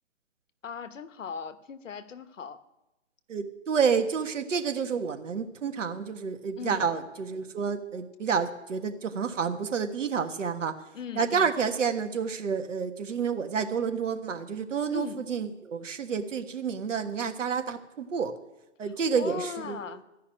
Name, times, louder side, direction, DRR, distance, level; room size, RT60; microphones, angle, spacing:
voice 1, 0.6-2.6 6.6-6.9 10.9-11.5 14.9-15.2 18.8-20.0, left 6 dB, 80° left, 12 dB, 1.2 m, -39 dB
voice 2, 3.3-10.7 11.2-18.3 18.8-19.8, right 6 dB, 75° right, 7 dB, 1.6 m, -29 dB
14.5 x 5.7 x 10.0 m, 0.98 s
hypercardioid pair, 140°, 37 cm